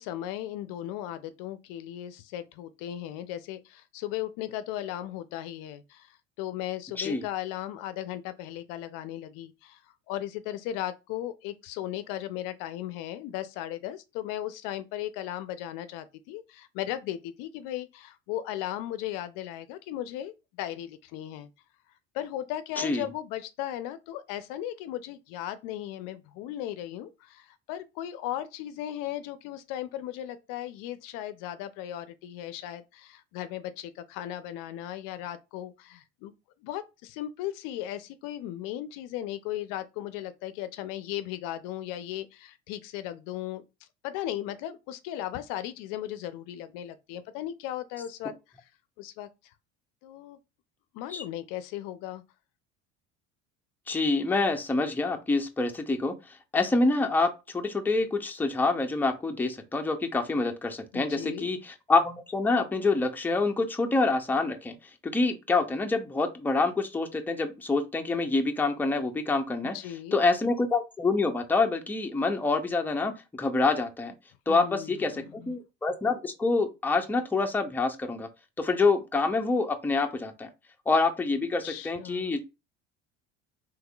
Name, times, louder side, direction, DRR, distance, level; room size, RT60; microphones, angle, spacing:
voice 1, 0.0-9.8 10.1-21.5 22.1-36.3 36.6-43.6 44.0-48.4 49.0-49.5 50.0-50.4 50.9-52.2 60.9-61.5 69.6-70.2 74.5-75.5 81.6-82.3, left 12 dB, 65° left, 0.5 m, -36 dB
voice 2, 22.8-23.1 51.1-51.2 53.9-56.1 56.5-64.7 65.0-69.8 70.1-73.1 73.4-74.1 74.5-78.3 78.6-80.5 80.9-82.4, left 3 dB, 5° left, 0.5 m, -26 dB
3.5 x 3.1 x 2.3 m
hypercardioid pair, 75°, 36 cm